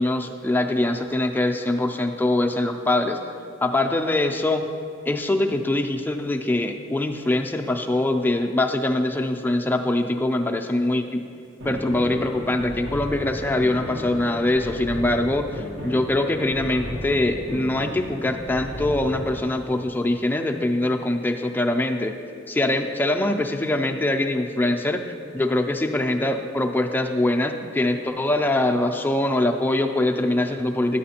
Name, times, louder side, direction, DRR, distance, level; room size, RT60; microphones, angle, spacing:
voice 1, 0.0-3.2 3.6-4.7 5.1-11.2 11.6-22.1 22.5-25.0 25.3-31.0, left 1 dB, 10° left, 4 dB, 0.3 m, -23 dB
sound 1, 11.6-19.4, equal, 85° right, 1.1 m, -35 dB
9.3 x 8.4 x 2.8 m, 2.5 s
head